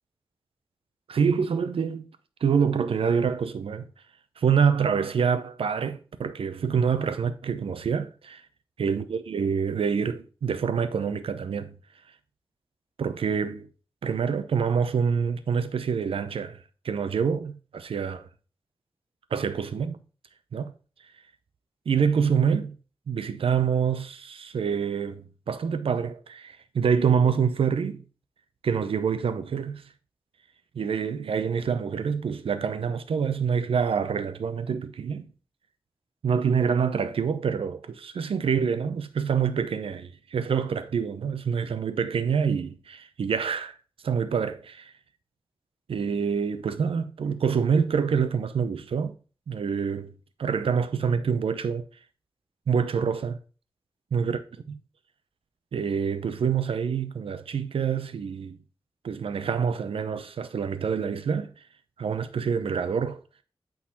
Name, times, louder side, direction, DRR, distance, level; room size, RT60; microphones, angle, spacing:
voice 1, 1.1-2.1 2.4-3.9 4.4-8.4 8.8-11.8 13.0-13.7 14.0-18.3 19.3-20.0 20.5-20.7 21.9-22.8 23.1-28.0 28.6-29.8 30.7-35.3 36.2-43.8 44.0-44.9 45.9-49.1 49.5-50.1 50.4-51.9 52.7-53.4 54.1-54.4 54.7-54.8 55.7-58.6 59.0-61.5 62.0-63.2, right 6 dB, 90° right, 0.7 m, -26 dB
8.6 x 4.0 x 4.1 m
wide cardioid pair, 90°, 9 cm